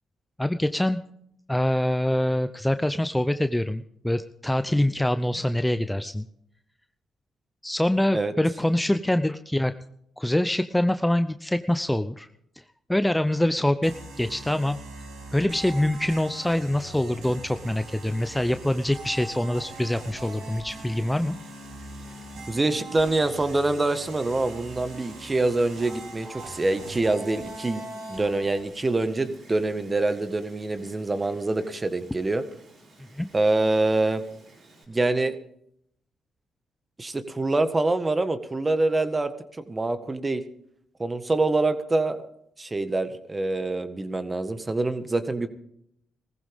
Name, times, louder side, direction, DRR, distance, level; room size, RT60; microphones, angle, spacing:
voice 1, 0.4-1.0 1.5-6.2 7.6-9.7 10.2-12.3 12.9-14.8 15.3-21.4 33.2-33.3, left 1 dB, 10° left, 10 dB, 0.7 m, -25 dB
sound 1, 13.8-28.6, right 2 dB, 85° right, 5.1 m, -41 dB
Wind, 17.6-34.8, right 2 dB, 60° right, 6.8 m, -53 dB
voice 2, 22.5-32.4 33.3-34.2 34.9-35.4 37.0-39.3 39.7-40.4 41.0-42.3 42.6-45.5, right 2 dB, 25° right, 10 dB, 1.6 m, -25 dB
19.5 x 15.0 x 3.6 m, 0.71 s
cardioid pair, 70°, 0 cm